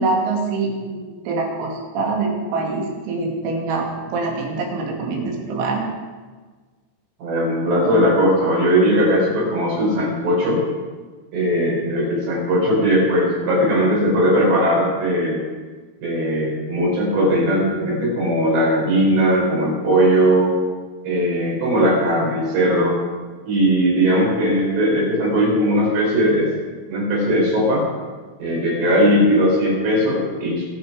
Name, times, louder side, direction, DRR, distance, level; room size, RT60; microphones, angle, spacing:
voice 1, 0.0-5.9, right 3 dB, 85° right, 0 dB, 5.0 m, -24 dB
voice 2, 7.2-10.6 11.3-15.4 16.0-20.5 21.0-22.9 23.4-26.5 26.9-27.8 28.4-30.7, equal, 55° right, -4 dB, 6.6 m, -18 dB
23.0 x 7.9 x 4.9 m, 1.4 s
omnidirectional pair, 6.0 m